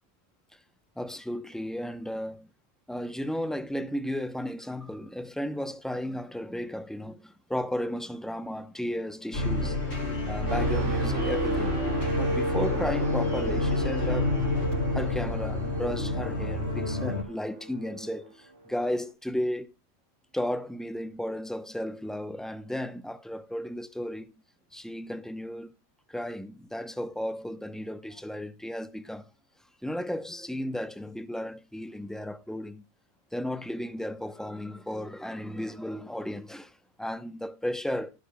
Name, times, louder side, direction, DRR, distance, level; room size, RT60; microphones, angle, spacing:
voice 1, 1.0-2.5 2.9-9.8 10.3-14.3 14.9-19.7 20.3-24.3 24.7-25.7 26.1-29.3 29.8-32.8 33.3-38.1, left 1 dB, ahead, 0.4 m, -34 dB
sound 1, 9.3-17.2, left 2 dB, 65° left, 4.1 m, -29 dB
sound 2, 10.5-18.3 18.7-19.0, right 2 dB, 80° right, 3.1 m, -34 dB
16.0 x 9.0 x 2.2 m
omnidirectional pair, 1.2 m